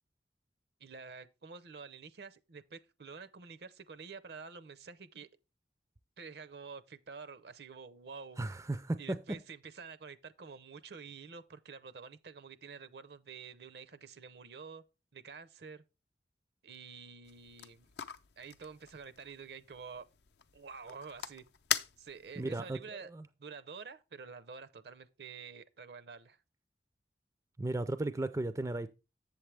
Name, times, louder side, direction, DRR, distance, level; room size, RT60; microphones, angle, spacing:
voice 1, 0.8-5.3 6.2-8.4 9.0-14.8 15.1-15.8 16.6-17.9 18.4-20.0 20.5-21.4 22.0-23.1 23.4-26.4, right 5 dB, 65° right, 0.6 m, -49 dB
voice 2, 8.4-9.2 22.4-23.3 27.6-28.9, right 2 dB, 20° right, 0.4 m, -35 dB
sound 1, 17.2-22.4, left 10 dB, 70° left, 0.5 m, -41 dB
7.9 x 7.3 x 3.3 m
head